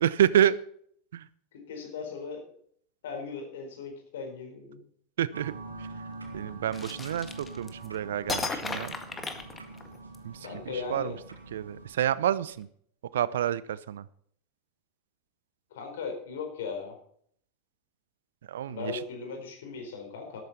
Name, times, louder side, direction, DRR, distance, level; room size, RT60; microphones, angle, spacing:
voice 1, 0.0-0.6 1.1-1.3 5.2-5.5 5.8-5.9 6.3-9.0 10.2-11.1 11.5-12.7 13.1-14.1 18.5-19.0, right 10 dB, 65° right, 18 dB, 0.6 m, -28 dB
voice 2, 1.7-2.4 3.0-4.8 10.4-11.2 15.7-17.0 18.6-20.4, left 5 dB, 65° left, 4 dB, 4.4 m, -38 dB
sound 1, 5.3-11.9, right 3 dB, 80° right, 2.5 m, -44 dB
sound 2, 6.7-7.9 8.3-10.2, left 4 dB, 20° left, 1.8 m, -35 dB
13.0 x 12.5 x 4.2 m, 0.63 s
figure-of-eight pair, 80°, 0 cm